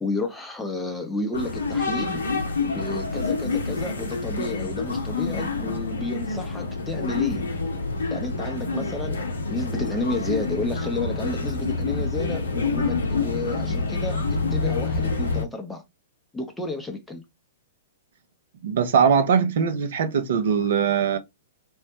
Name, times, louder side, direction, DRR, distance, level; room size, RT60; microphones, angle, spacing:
voice 1, 0.0-2.2 2.6-7.4 8.1-9.2 9.5-14.2 14.5-15.8 16.3-17.2, left 2 dB, 5° left, 0.7 m, -31 dB
sound 1, 1.3-15.4, left 3 dB, 75° left, 0.6 m, -27 dB
voice 2, 18.6-21.2, right 7 dB, 60° right, 0.7 m, -21 dB
3.5 x 2.1 x 2.7 m
figure-of-eight pair, 110°, 0 cm